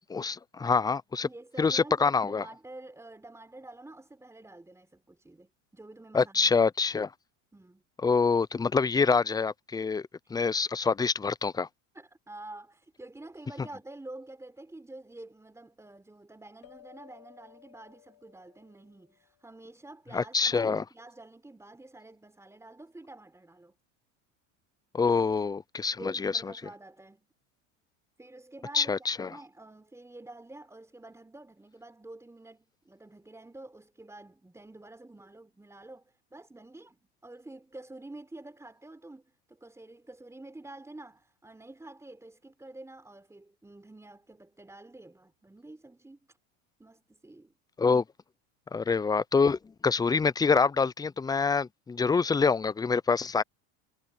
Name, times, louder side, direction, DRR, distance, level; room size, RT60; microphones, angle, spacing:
voice 1, 0.1-1.3 1.6-2.4 6.1-7.1 8.0-11.7 20.1-20.8 24.9-26.5 28.7-29.3 47.8-48.0 48.7-53.4, left 5 dB, 10° left, 0.5 m, -26 dB
voice 2, 1.2-6.7 7.5-7.8 11.9-23.7 25.0-25.2 26.0-27.3 28.2-46.4 46.8-47.5, right 2 dB, 5° right, 4.3 m, -48 dB
sound 1, 16.6-19.6, left 14 dB, 60° left, 3.5 m, -57 dB
supercardioid pair, 105°, 38 cm